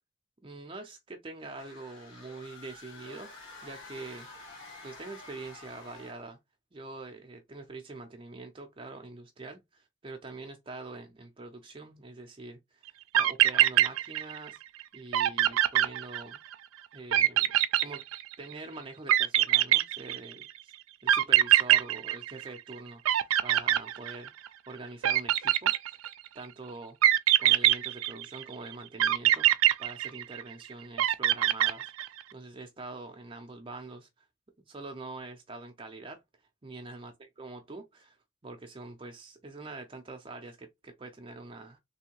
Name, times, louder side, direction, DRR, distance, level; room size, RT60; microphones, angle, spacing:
voice 1, 0.4-3.3 3.6-4.3 4.8-6.4 6.7-14.6 14.9-16.4 16.9-17.5 17.8-18.1 18.4-20.7 21.0-24.3 24.7-25.7 26.3-27.0 27.4-34.3 34.7-36.2 36.6-37.1 37.4-38.2 38.4-41.8, right 3 dB, 25° right, 0.5 m, -44 dB
sound 1, 1.4-6.3, left 3 dB, 70° left, 1.5 m, -49 dB
sound 2, 12.9-13.0 13.1-14.5 14.8-14.9 15.1-16.5 17.1-18.5 19.1-20.4 21.1-22.7 23.0-24.5 25.0-26.3 27.0-28.4 29.0-30.5 31.0-32.2, right 12 dB, 90° right, 0.3 m, -23 dB
3.4 x 2.7 x 2.9 m
head